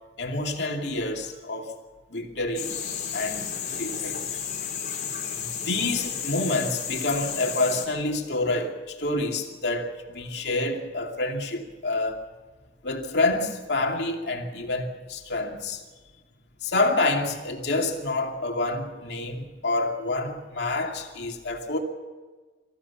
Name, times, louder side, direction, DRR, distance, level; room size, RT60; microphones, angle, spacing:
voice 1, 0.2-1.7 2.1-2.8 3.1-3.5 3.8-4.2 5.4-12.2 12.8-15.8 16.6-21.8, left 2 dB, 65° left, 2.6 m, -28 dB
sound 1, 2.5-7.9, left 8 dB, 45° left, 4.6 m, -32 dB
26.0 x 15.5 x 7.2 m
head